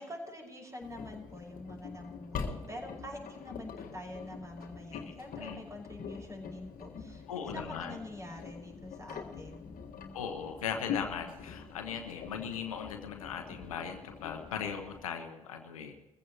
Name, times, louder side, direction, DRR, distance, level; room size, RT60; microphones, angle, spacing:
voice 1, 0.0-9.7, left 1 dB, 20° right, 1 dB, 5.8 m, -46 dB
Engine, 0.8-15.0, left 6 dB, 55° left, 1.7 m, -44 dB
voice 2, 4.9-5.6 7.3-8.0 10.1-16.0, left 7 dB, 85° left, 5 dB, 1.1 m, -39 dB
22.0 x 15.0 x 3.0 m, 1.1 s
hypercardioid pair, 50°, 17 cm